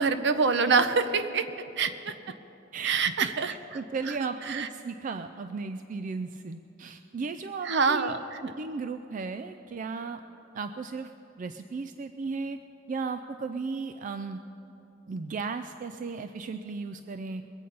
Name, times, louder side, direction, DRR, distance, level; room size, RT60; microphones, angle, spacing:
voice 1, 0.0-1.5 1.8-2.1 2.8-3.5 4.2-4.7 7.6-8.4, right 5 dB, 65° right, 10 dB, 0.7 m, -25 dB
voice 2, 2.7-8.2 8.4-10.2 10.5-11.1 11.4-12.6 12.9-14.4 15.1-17.4, right 4 dB, 45° right, 9 dB, 0.3 m, -35 dB
21.5 x 8.5 x 5.4 m, 3.0 s
head